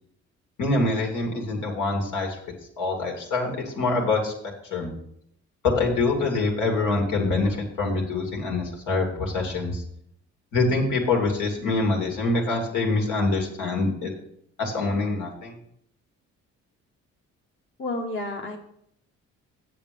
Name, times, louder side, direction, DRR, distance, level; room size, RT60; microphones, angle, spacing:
voice 1, 0.6-2.4 2.8-4.3 4.7-4.9 5.8-9.8 10.5-14.1 14.6-15.5, left 3 dB, 80° left, 0 dB, 2.6 m, -25 dB
voice 2, 17.8-18.6, left 2 dB, 40° left, 1 dB, 1.3 m, -30 dB
7.6 x 7.5 x 5.3 m, 0.71 s
cardioid pair, 90°, 30 cm